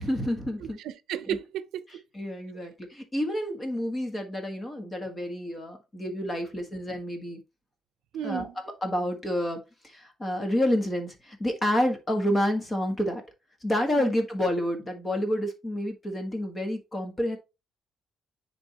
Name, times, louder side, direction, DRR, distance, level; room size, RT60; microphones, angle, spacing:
voice 1, 0.0-0.8 1.3-1.4 2.1-7.4 8.2-8.5 8.8-9.6 9.8-13.2 13.6-17.4, left 1 dB, 20° left, 1.5 m, -29 dB
voice 2, 0.6-2.0 2.5-2.7 8.1-8.6 13.9-14.1, right 10 dB, 85° right, 0.6 m, -35 dB
9.7 x 3.6 x 2.9 m
cardioid pair, 135°, 0 cm